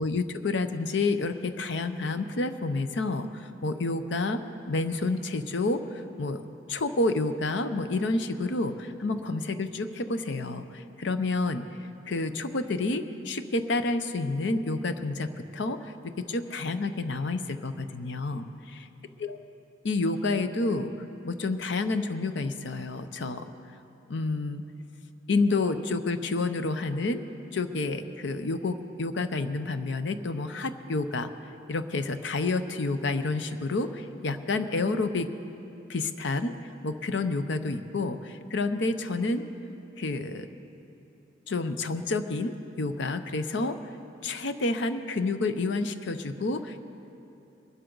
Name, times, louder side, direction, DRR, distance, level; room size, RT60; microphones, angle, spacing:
voice 1, 0.0-4.4 4.7-6.4 6.7-11.7 12.1-18.5 19.2-19.4 19.8-20.9 21.2-23.4 24.1-24.6 25.3-27.2 27.5-31.3 31.7-35.3 35.9-36.5 36.8-39.5 40.0-40.5 41.5-43.8 44.2-46.8, left 3 dB, 70° left, 10 dB, 0.7 m, -29 dB
22.0 x 12.5 x 3.9 m, 2.9 s
head